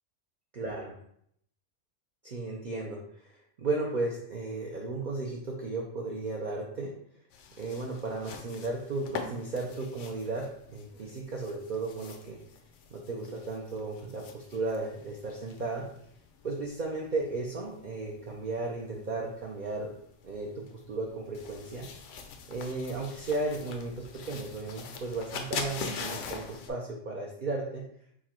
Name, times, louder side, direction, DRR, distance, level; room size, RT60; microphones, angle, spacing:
voice 1, 0.5-0.9 2.2-3.3 3.6-6.9 7.6-12.4 12.9-15.9 16.4-19.9 20.2-21.9 22.5-27.8, right 3 dB, 50° right, -2 dB, 0.6 m, -35 dB
sound 1, 7.3-26.7, left 5 dB, 75° left, 0.9 m, -44 dB
4.7 x 2.2 x 4.3 m, 0.70 s
omnidirectional pair, 1.3 m